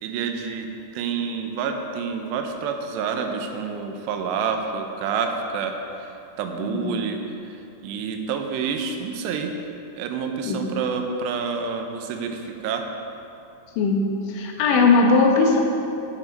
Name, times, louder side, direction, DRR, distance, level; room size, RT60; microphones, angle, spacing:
voice 1, 0.0-9.5 9.9-12.9, right 5 dB, 80° right, 4 dB, 2.8 m, -28 dB
voice 2, 13.8-15.6, left 4 dB, 85° left, 1 dB, 3.4 m, -19 dB
11.5 x 6.9 x 5.2 m, 2.8 s
omnidirectional pair, 5.2 m